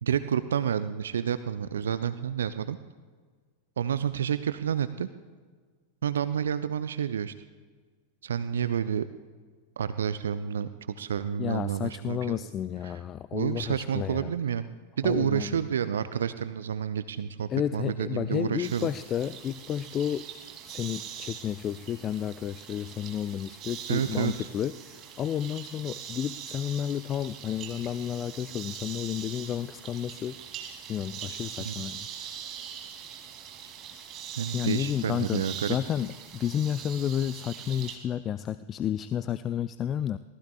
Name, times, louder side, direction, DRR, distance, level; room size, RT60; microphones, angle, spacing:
voice 1, 0.0-2.8 3.8-5.1 6.0-7.3 8.2-9.1 9.8-12.5 12.8-13.0 13.3-14.7 15.0-18.9 23.9-24.5 31.6-31.7 34.4-35.8, right 8 dB, 65° right, 13 dB, 0.5 m, -29 dB
voice 2, 11.4-14.3 15.0-15.5 17.5-20.3 20.6-30.4 30.9-32.1 34.5-40.2, left 10 dB, 30° left, 15 dB, 0.4 m, -31 dB
sound 1, 18.6-38.0, right 9 dB, 35° right, 2.7 m, -42 dB
27.0 x 18.5 x 2.4 m, 1.5 s
figure-of-eight pair, 90°, 0 cm